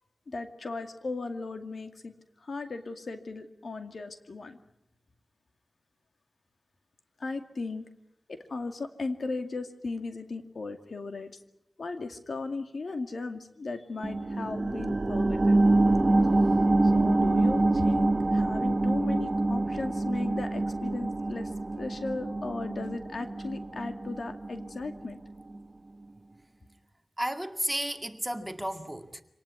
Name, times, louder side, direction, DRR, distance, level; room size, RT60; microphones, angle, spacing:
voice 1, 0.3-2.1 2.4-4.6 7.2-7.9 8.3-11.3 11.8-16.5 16.8-21.5 21.8-25.2, left 3 dB, 70° left, 2.3 m, -37 dB
sound 1, 14.0-25.1 25.5-25.6, right 2 dB, 40° right, 1.1 m, -26 dB
voice 2, 27.2-29.2, right 1 dB, 10° right, 2.1 m, -33 dB
26.0 x 19.0 x 9.6 m
wide cardioid pair, 65°, 0 cm